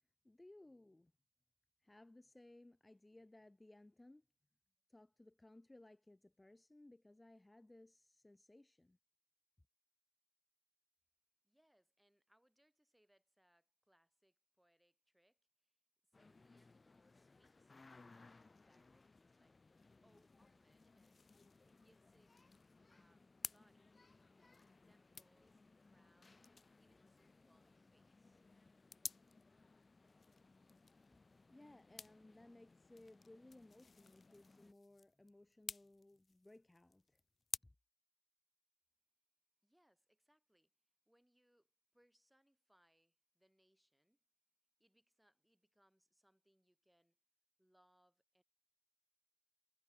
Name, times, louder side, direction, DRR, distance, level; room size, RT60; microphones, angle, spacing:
voice 1, 0.2-1.1 1.8-4.2 4.9-9.0 31.5-37.2 37.6-37.7, left 1 dB, 25° left, 1.6 m, -62 dB
voice 2, 11.4-19.6 20.0-21.2 21.6-22.4 22.9-24.0 24.4-28.4 39.6-44.2 44.8-47.2 47.6-48.4, equal, 5° right, 7.6 m, -78 dB
sound 1, 16.1-34.7, left 3 dB, 50° left, 1.5 m, -67 dB
sound 2, 19.5-37.6, left 4 dB, 80° left, 0.6 m, -55 dB
wide cardioid pair, 85°, 0 cm